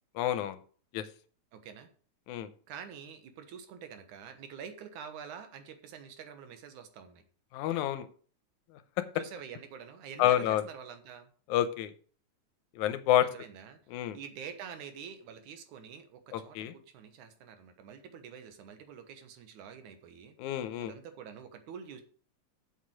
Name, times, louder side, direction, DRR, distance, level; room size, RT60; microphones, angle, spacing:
voice 1, 0.2-0.6 0.9-1.1 2.3-2.5 7.5-8.1 10.2-10.6 11.5-11.9 12.8-13.3 13.9-14.2 16.3-16.7 20.4-20.9, left 12 dB, 85° left, 12 dB, 2.2 m, -28 dB
voice 2, 1.5-1.9 2.7-7.2 9.1-11.3 13.3-13.8 14.1-20.3 20.8-22.0, right 7 dB, 85° right, 8 dB, 2.7 m, -46 dB
7.5 x 6.7 x 6.4 m, 0.43 s
omnidirectional pair, 3.4 m